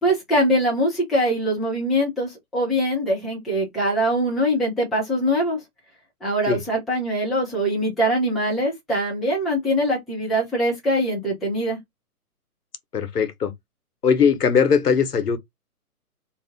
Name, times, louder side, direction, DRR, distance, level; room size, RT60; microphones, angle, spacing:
voice 1, 0.0-5.6 6.2-11.8, equal, ahead, 0.3 m, -23 dB
voice 2, 12.9-13.5 14.0-15.4, left 6 dB, 80° left, 0.9 m, -19 dB
2.5 x 2.4 x 3.5 m
figure-of-eight pair, 140°, 46 cm